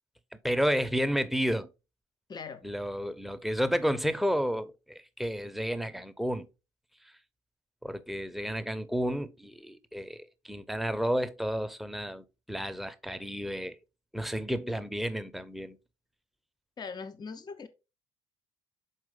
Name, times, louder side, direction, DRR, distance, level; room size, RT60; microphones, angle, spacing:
voice 1, 0.4-1.7 2.6-6.5 7.8-13.8 14.1-15.8, equal, ahead, 0.8 m, -31 dB
voice 2, 2.3-2.6 16.8-17.7, left 5 dB, 30° left, 0.7 m, -40 dB
6.5 x 4.6 x 3.8 m
hypercardioid pair, 50°, 13 cm